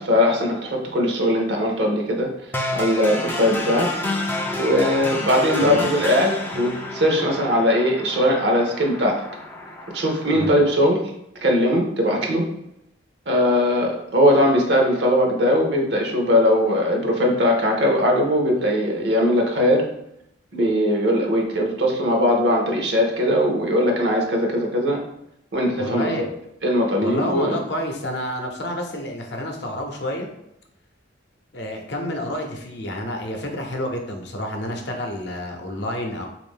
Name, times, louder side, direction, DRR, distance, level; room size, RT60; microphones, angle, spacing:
voice 1, 0.0-3.9 4.6-9.1 9.9-11.0 11.4-12.4 13.3-19.8 20.5-25.0 25.5-26.1 26.6-27.6, equal, 65° right, 1 dB, 0.7 m, -20 dB
sound 1, 2.5-10.5, left 1 dB, 10° left, 0.3 m, -30 dB
voice 2, 25.8-26.3 27.0-30.3 31.5-36.3, left 1 dB, 60° left, 2 dB, 0.6 m, -29 dB
3.5 x 2.5 x 3.6 m, 0.80 s
head